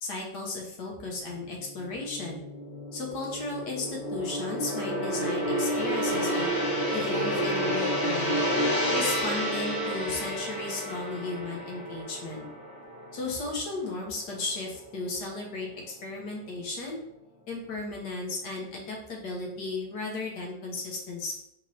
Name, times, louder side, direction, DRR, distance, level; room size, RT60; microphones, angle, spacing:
voice 1, 0.0-2.4 2.9-6.5 6.9-8.4 8.9-12.5 13.1-15.7 16.0-17.0 17.5-21.3, left 3 dB, 65° left, -1 dB, 1.3 m, -35 dB
Gong, 1.7-14.1 14.4-14.7, equal, 35° left, 0.9 m, -30 dB
4.0 x 2.9 x 3.1 m, 0.78 s
omnidirectional pair, 2.0 m